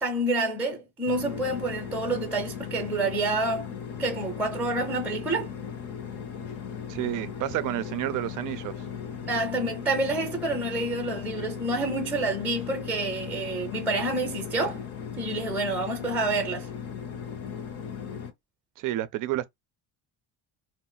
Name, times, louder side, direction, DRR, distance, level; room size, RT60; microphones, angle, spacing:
voice 1, 0.0-3.7 4.0-5.5 9.2-14.8 15.2-16.7, right 2 dB, 5° right, 0.6 m, -28 dB
sound 1, 1.1-18.3, left 7 dB, 40° left, 0.6 m, -37 dB
voice 2, 6.9-8.7 18.8-19.5, right 14 dB, 55° right, 0.5 m, -30 dB
2.3 x 2.1 x 3.8 m
cardioid pair, 130°, 38 cm